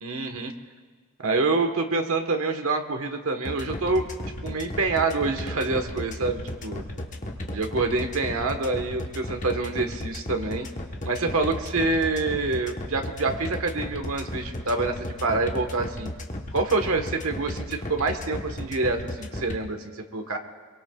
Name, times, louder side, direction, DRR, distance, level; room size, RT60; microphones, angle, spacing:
voice 1, 0.0-0.5 1.2-4.1 4.4-6.8 7.5-10.7 11.0-16.1 16.5-20.4, right 3 dB, 70° right, 5 dB, 1.3 m, -26 dB
sound 1, 3.4-19.6, left 1 dB, 35° left, 1.1 m, -34 dB
26.0 x 23.0 x 2.4 m, 1.5 s
head